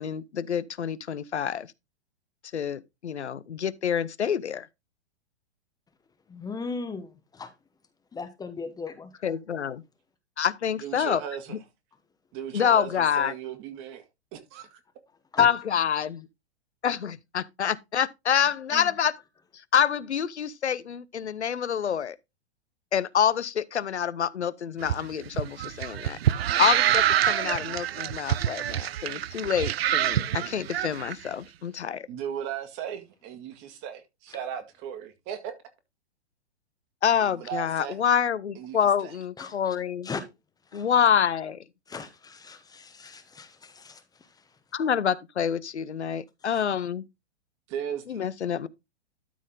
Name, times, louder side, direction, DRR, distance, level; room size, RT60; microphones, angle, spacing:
voice 1, 0.0-1.7 2.5-4.7 9.2-9.8 10.4-11.2 11.5-11.6 12.5-13.3 15.4-16.3 16.8-19.1 19.7-22.2 22.9-32.1 37.0-40.1 40.7-41.6 44.7-47.1 48.1-48.7, left 8 dB, 85° left, 0.7 m, -27 dB
voice 2, 6.3-7.5 8.1-9.3 15.3-15.5 18.7-18.9 39.4-39.8 40.0-40.2 40.7-40.9 41.9-44.4 46.5-46.6, left 4 dB, 10° left, 0.9 m, -38 dB
voice 3, 10.8-11.6 12.3-14.0 14.3-14.8 32.1-35.5 37.2-38.0 38.6-39.1 47.7-48.2, right 9 dB, 35° right, 1.9 m, -37 dB
sound 1, 24.8-31.1, right 11 dB, 65° right, 0.6 m, -26 dB
12.5 x 4.2 x 3.8 m
figure-of-eight pair, 115°, 33 cm